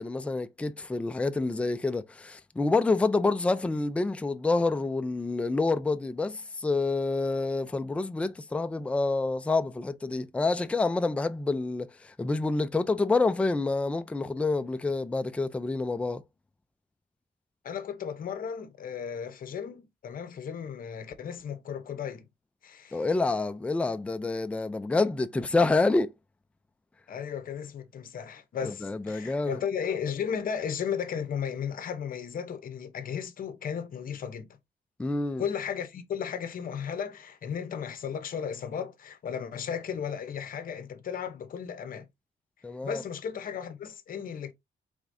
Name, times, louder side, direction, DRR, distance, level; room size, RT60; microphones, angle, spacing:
voice 1, 0.0-16.2 22.9-26.1 28.6-29.6 35.0-35.4 42.6-43.0, left 3 dB, 5° left, 0.3 m, -28 dB
voice 2, 17.6-22.2 22.6-23.1 27.1-34.5 35.4-42.1 42.8-44.5, left 7 dB, 50° left, 0.8 m, -35 dB
5.0 x 3.5 x 2.6 m
wide cardioid pair, 150°, 19 cm